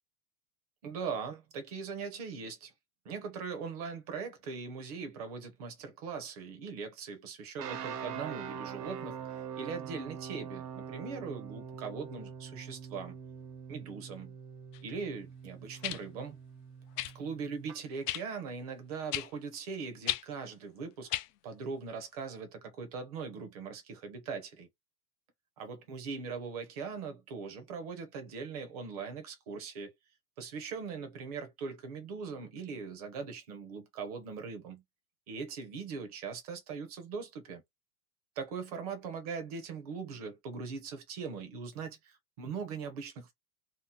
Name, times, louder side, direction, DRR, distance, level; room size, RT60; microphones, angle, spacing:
voice 1, 0.8-2.7 3.0-9.2 9.6-13.2 13.7-14.4 14.8-16.4 17.2-21.1 21.4-24.7 25.6-29.9 30.4-34.8 35.3-37.6 38.4-43.3, right 5 dB, 25° right, 0.4 m, -40 dB
sound 1, 7.6-17.8, right 7 dB, 90° right, 0.9 m, -43 dB
sound 2, 14.7-14.8 15.8-16.0 17.0-17.1 18.1-18.2 19.1-19.3 20.0-20.2 21.1-21.3 22.2-22.3, left 15 dB, 80° left, 0.6 m, -33 dB
2.8 x 2.1 x 3.5 m
supercardioid pair, 175°, 48 cm